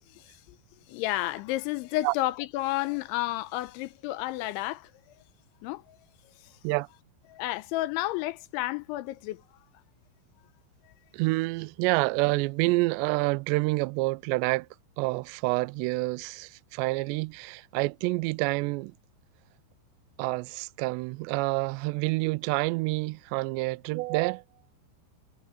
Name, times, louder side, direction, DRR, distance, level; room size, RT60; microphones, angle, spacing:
voice 1, 0.1-0.6 0.9-4.9 5.6-6.0 6.4-6.6 7.3-9.4 10.9-11.0, left 17 dB, 90° left, 3.1 m, -31 dB
voice 2, 11.1-14.7 15.0-18.9 20.2-24.4, right 23 dB, 85° right, 2.5 m, -28 dB
omnidirectional pair, 5.4 m